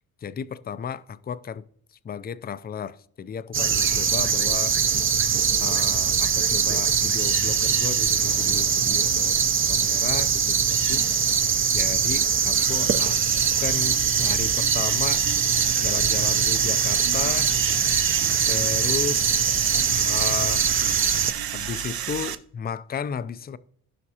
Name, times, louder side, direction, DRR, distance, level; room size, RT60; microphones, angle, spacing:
voice 1, 0.2-1.6 2.0-4.8 5.6-9.4 9.7-13.2 13.6-15.3 15.8-17.5 18.5-19.4 20.0-20.7 21.5-23.6, left 7 dB, 25° left, 0.4 m, -34 dB
sound 1, 3.5-21.3, right 7 dB, 35° right, 0.6 m, -22 dB
sound 2, 12.5-22.4, right 10 dB, 70° right, 0.7 m, -33 dB
16.0 x 5.9 x 2.8 m
cardioid pair, 100°, 38 cm